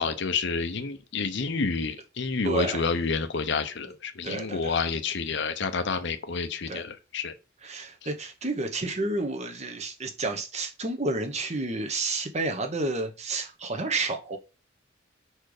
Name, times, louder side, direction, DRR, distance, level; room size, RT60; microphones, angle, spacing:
voice 1, 0.0-7.3, left 4 dB, 65° left, 0.8 m, -29 dB
voice 2, 2.4-2.9 4.2-4.7 6.7-6.8 7.6-14.4, right 2 dB, 35° right, 1.0 m, -30 dB
5.0 x 4.5 x 4.9 m
head